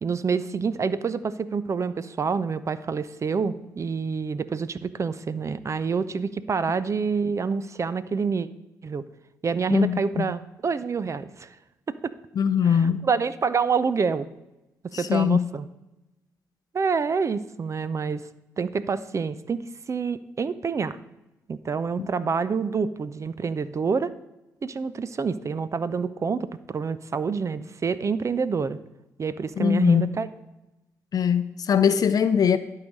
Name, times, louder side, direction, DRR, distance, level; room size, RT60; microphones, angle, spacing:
voice 1, 0.0-8.5 8.8-9.0 9.4-11.6 11.9-12.1 12.6-14.3 15.0-15.7 16.7-18.3 18.6-21.0 21.5-24.1 24.6-28.8 29.2-30.3, right 5 dB, 40° right, 0.5 m, -27 dB
voice 2, 9.7-10.3 12.4-13.0 14.9-15.4 22.0-22.1 29.6-30.1 31.1-32.6, left 7 dB, 55° left, 0.6 m, -21 dB
11.5 x 4.8 x 5.2 m
hypercardioid pair, 50°, 8 cm